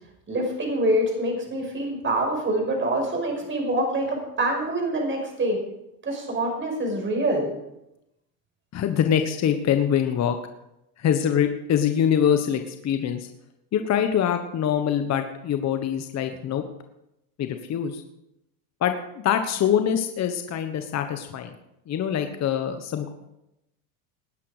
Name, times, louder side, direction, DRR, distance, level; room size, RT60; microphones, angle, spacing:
voice 1, 0.3-5.6 6.0-7.5, right 1 dB, 25° right, 1 dB, 5.5 m, -25 dB
voice 2, 8.7-10.4 11.0-13.3 13.7-16.6 17.4-18.0 18.8-21.5 21.9-23.1, left 9 dB, 35° left, 7 dB, 1.3 m, -24 dB
19.0 x 10.0 x 5.0 m, 0.87 s
supercardioid pair, 110°, 47 cm